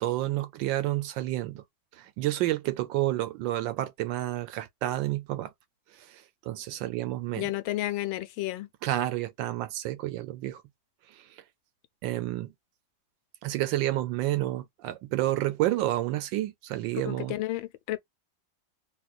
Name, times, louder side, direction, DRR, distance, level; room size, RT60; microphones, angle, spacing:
voice 1, 0.0-1.6 2.0-5.5 6.5-7.5 8.8-10.6 12.0-12.5 13.4-17.3, right 15 dB, 75° right, 1.2 m, -29 dB
voice 2, 7.4-8.7 17.1-18.0, left 15 dB, 85° left, 1.4 m, -31 dB
4.2 x 2.3 x 2.4 m
omnidirectional pair, 2.1 m